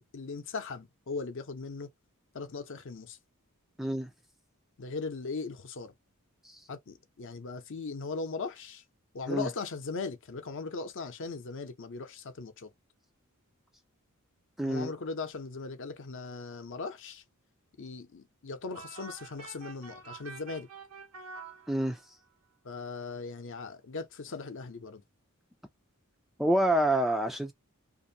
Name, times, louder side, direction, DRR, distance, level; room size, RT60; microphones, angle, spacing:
voice 1, 0.0-1.9 2.3-3.2 4.8-5.9 6.7-8.8 9.1-12.7 14.6-17.2 17.8-20.7 22.6-25.0, left 4 dB, 60° left, 0.7 m, -39 dB
voice 2, 3.8-4.1 6.4-6.6 9.3-9.5 14.6-14.9 21.7-22.0 26.4-27.5, right 1 dB, ahead, 0.3 m, -27 dB
sound 1, 18.7-22.3, right 4 dB, 75° right, 0.8 m, -47 dB
2.6 x 2.6 x 2.6 m
head